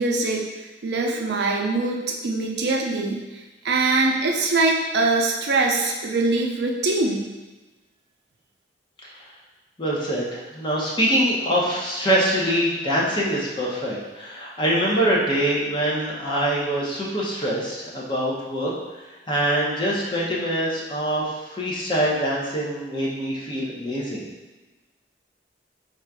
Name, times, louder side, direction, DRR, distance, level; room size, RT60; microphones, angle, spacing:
voice 1, 0.0-7.3, right 3 dB, 65° right, 0 dB, 0.5 m, -23 dB
voice 2, 9.8-24.3, right 1 dB, 25° left, -5 dB, 0.9 m, -24 dB
4.0 x 2.5 x 4.6 m, 1.2 s
head